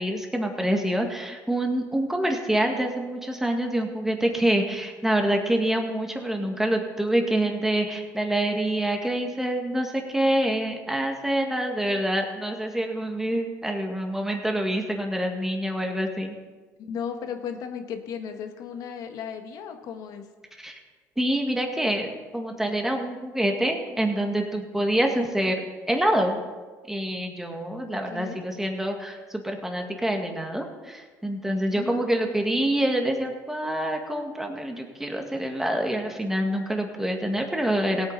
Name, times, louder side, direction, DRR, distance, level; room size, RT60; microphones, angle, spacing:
voice 1, 0.0-16.4 20.6-20.8 21.2-26.4 26.9-38.1, right 1 dB, 5° right, 3 dB, 1.9 m, -26 dB
voice 2, 16.8-20.3 27.9-28.4 31.8-32.0, left 7 dB, 65° left, 6 dB, 1.4 m, -35 dB
17.5 x 8.6 x 4.1 m, 1.4 s
supercardioid pair, 90°, 7 cm